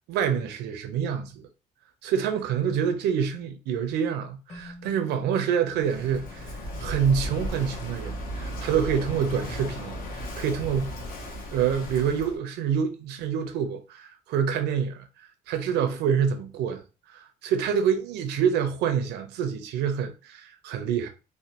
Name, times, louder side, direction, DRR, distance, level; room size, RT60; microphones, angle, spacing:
voice 1, 0.1-1.5 2.0-11.0 11.5-15.1 15.5-16.8 17.1-21.1, right 7 dB, 80° right, 0.6 m, -27 dB
Keyboard (musical), 4.5-7.7, left 1 dB, 40° left, 1.6 m, -49 dB
Walk footsteps / Wind / Waves surf, 5.8-12.4, left 1 dB, 55° left, 0.9 m, -35 dB
3.2 x 2.2 x 2.9 m
cardioid pair, 110°, 17 cm